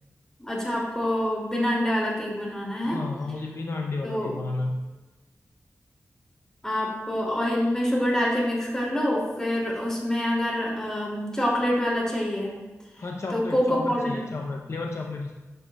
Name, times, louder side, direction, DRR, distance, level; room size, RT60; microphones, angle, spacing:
voice 1, 0.4-3.0 4.0-4.3 6.6-12.5 13.3-14.3, left 1 dB, 10° left, -4 dB, 2.4 m, -26 dB
voice 2, 2.8-4.8 13.0-15.3, left 3 dB, 55° left, 1 dB, 0.6 m, -32 dB
10.5 x 6.1 x 2.2 m, 1.2 s
wide cardioid pair, 85°, 5 cm